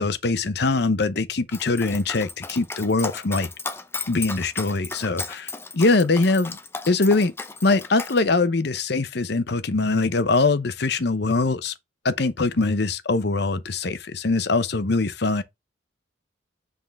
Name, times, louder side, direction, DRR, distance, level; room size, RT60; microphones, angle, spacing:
voice 1, 0.0-3.5 4.1-6.6 6.9-7.3 7.6-11.7 12.0-15.4, left 3 dB, 55° left, 0.7 m, -22 dB
Dog, 1.5-8.2, left 4 dB, 10° left, 0.5 m, -35 dB
7.5 x 3.8 x 3.4 m
head